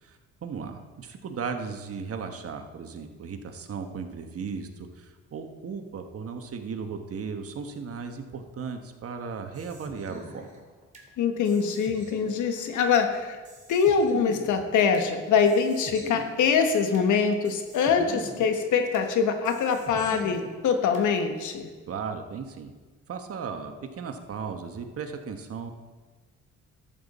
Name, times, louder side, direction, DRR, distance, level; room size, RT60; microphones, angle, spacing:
voice 1, 0.0-10.5 21.9-22.7 23.1-25.7, right 5 dB, 50° right, 6 dB, 1.2 m, -36 dB
sound 1, 9.5-11.1 11.4-13.1 13.4-15.1 15.4-17.1 17.4-19.1 19.4-21.1, right 2 dB, 25° right, 2.3 m, -43 dB
voice 2, 11.2-13.4 13.7-21.7, left 6 dB, 80° left, 6 dB, 1.3 m, -24 dB
12.5 x 7.2 x 4.2 m, 1.3 s
cardioid pair, 90°, 30 cm